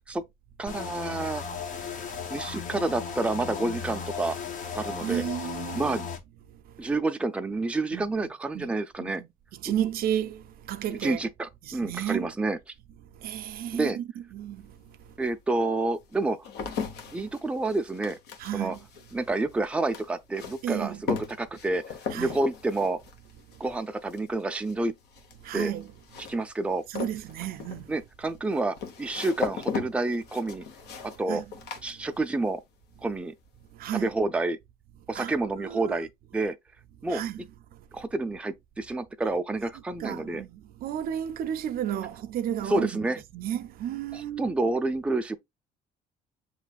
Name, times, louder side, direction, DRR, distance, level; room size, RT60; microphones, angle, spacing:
voice 1, 0.6-1.4 2.3-4.4 4.7-5.2 5.7-6.0 6.8-9.2 10.9-12.6 13.7-14.0 15.2-16.4 17.1-18.2 18.5-18.8 19.1-21.8 22.1-23.0 23.6-24.9 25.5-25.7 26.3-26.8 27.9-30.7 31.0-31.4 31.8-32.6 33.0-33.3 33.9-34.6 35.1-36.6 37.0-37.2 37.9-40.4 42.7-43.2 44.1-45.4, right 2 dB, 5° right, 0.5 m, -29 dB
sound 1, 0.7-6.2, left 6 dB, 50° left, 0.9 m, -36 dB
voice 2, 5.0-6.1 6.5-6.8 7.9-8.0 8.5-8.7 9.0-9.3 9.6-11.2 11.6-12.3 13.1-15.1 18.4-18.8 20.6-21.0 22.1-22.4 25.4-25.9 26.9-27.9 31.3-31.4 33.7-34.1 35.1-35.4 35.6-36.0 37.1-37.4 37.9-38.0 40.0-43.1 43.3-44.5, right 10 dB, 60° right, 0.5 m, -33 dB
sound 2, 14.6-14.7 15.4-32.6 32.9-33.4, left 6 dB, 75° left, 1.0 m, -38 dB
7.3 x 3.1 x 2.3 m
cardioid pair, 110°, 17 cm